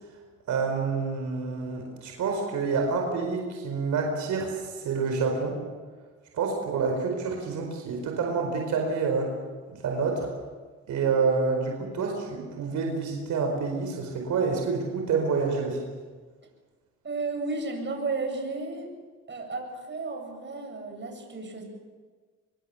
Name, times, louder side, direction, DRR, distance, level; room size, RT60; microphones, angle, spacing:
voice 1, 0.5-5.6 6.3-9.3 9.7-10.3 10.9-15.8, right 4 dB, 75° right, 2 dB, 4.7 m, -28 dB
voice 2, 17.0-18.9 19.3-21.6, right 3 dB, 40° right, 3 dB, 7.7 m, -33 dB
25.0 x 23.5 x 7.2 m, 1.4 s
cardioid pair, 90°, 30 cm